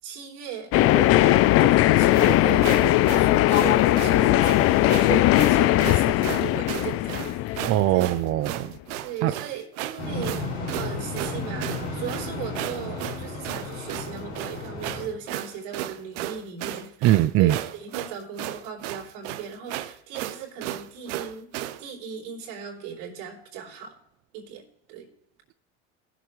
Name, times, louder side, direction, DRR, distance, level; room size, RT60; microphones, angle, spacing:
voice 1, 0.0-8.2 9.0-10.4 10.7-21.5 21.8-24.0 24.3-24.6 24.9-25.1, right 8 dB, 70° right, 3.7 m, -37 dB
sound 1, 0.7-8.4, left 15 dB, 45° left, 0.4 m, -19 dB
sound 2, 2.1-21.8, right 14 dB, 85° right, 0.8 m, -35 dB
voice 2, 7.6-8.7 9.2-9.3 17.0-17.5, right 15 dB, 45° right, 0.4 m, -21 dB
sound 3, 10.0-15.1, left 3 dB, 90° left, 4.4 m, -33 dB
19.0 x 7.1 x 3.1 m
supercardioid pair, 115°, 35 cm